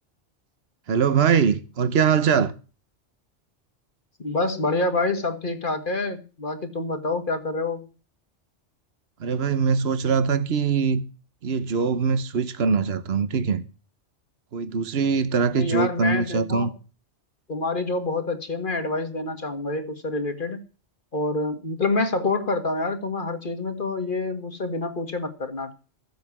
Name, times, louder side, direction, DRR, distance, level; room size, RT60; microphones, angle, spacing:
voice 1, 0.9-2.5 9.2-11.0 11.4-13.6 14.5-16.7, right 6 dB, 60° right, 1.3 m, -22 dB
voice 2, 4.2-7.8 15.5-16.7 17.5-20.6 21.1-25.7, left 2 dB, 45° left, 1.9 m, -27 dB
15.0 x 7.8 x 6.1 m
omnidirectional pair, 1.2 m